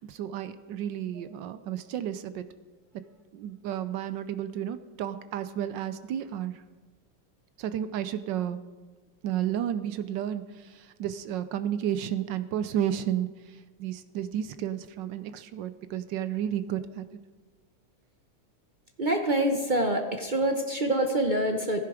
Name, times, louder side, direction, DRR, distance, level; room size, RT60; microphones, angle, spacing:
voice 1, 0.0-2.5 3.3-6.6 7.6-8.6 9.2-17.0, right 10 dB, 75° right, 12 dB, 1.2 m, -32 dB
voice 2, 19.0-21.8, right 1 dB, 50° right, 4 dB, 0.5 m, -26 dB
15.5 x 10.5 x 4.9 m, 1.3 s
omnidirectional pair, 2.1 m